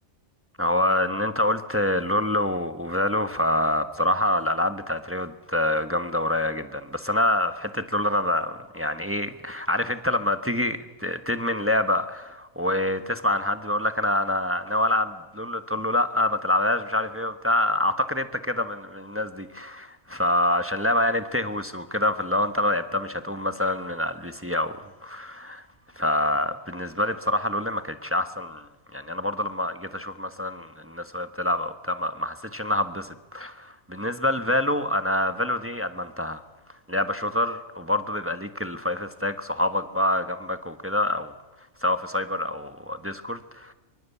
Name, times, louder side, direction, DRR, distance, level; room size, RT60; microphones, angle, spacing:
voice 1, 0.6-25.6 26.0-36.4 36.9-41.3 41.8-43.7, left 1 dB, 10° right, 9 dB, 1.2 m, -26 dB
25.5 x 24.0 x 8.4 m, 1.1 s
omnidirectional pair, 1.4 m